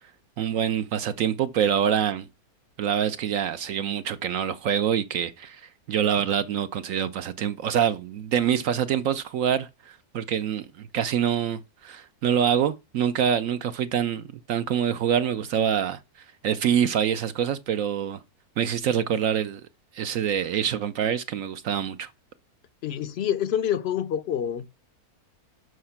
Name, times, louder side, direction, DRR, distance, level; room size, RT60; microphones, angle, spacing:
voice 1, 0.4-2.3 2.8-16.0 16.4-18.2 18.6-19.6 19.9-22.1, right 8 dB, 70° right, 0.9 m, -25 dB
voice 2, 22.8-24.7, left 9 dB, 60° left, 0.7 m, -27 dB
6.4 x 5.7 x 5.7 m
omnidirectional pair, 1.6 m